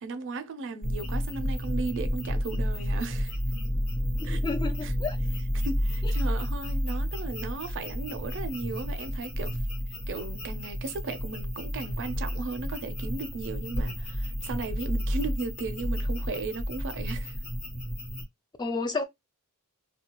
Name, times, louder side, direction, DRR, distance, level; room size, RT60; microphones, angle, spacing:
voice 1, 0.0-3.3 4.2-4.4 4.8-4.9 5.5-9.6 10.1-17.3, right 3 dB, 55° right, 0.5 m, -36 dB
sound 1, 0.8-18.2, equal, 90° left, 1.2 m, -31 dB
voice 2, 4.2-5.2 6.0-6.1 18.6-19.0, left 3 dB, 20° left, 0.3 m, -31 dB
2.3 x 2.2 x 2.9 m
head